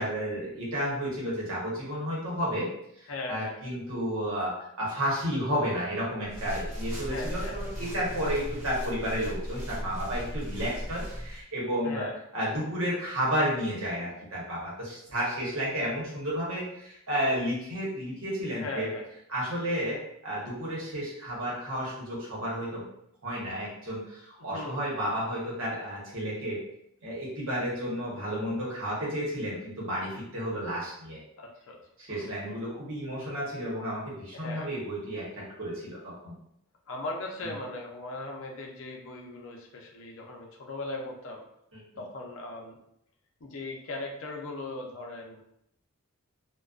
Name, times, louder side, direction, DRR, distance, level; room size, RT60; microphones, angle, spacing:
voice 1, 0.0-2.7 3.0-12.0 12.3-18.9 19.3-22.8 23.2-26.6 27.0-31.2 32.0-35.2 35.6-36.4 41.7-41.8, equal, 70° right, -5 dB, 0.9 m, -32 dB
voice 2, 3.1-3.6 7.0-7.6 11.8-12.1 18.6-19.1 24.5-24.8 31.4-31.8 32.1-32.6 34.3-34.7 36.9-41.5 42.0-42.8 43.4-45.4, left 2 dB, 65° left, 0 dB, 0.5 m, -38 dB
sound 1, 6.2-11.4, equal, 15° right, 0.7 m, -37 dB
2.4 x 2.2 x 2.3 m, 0.76 s
head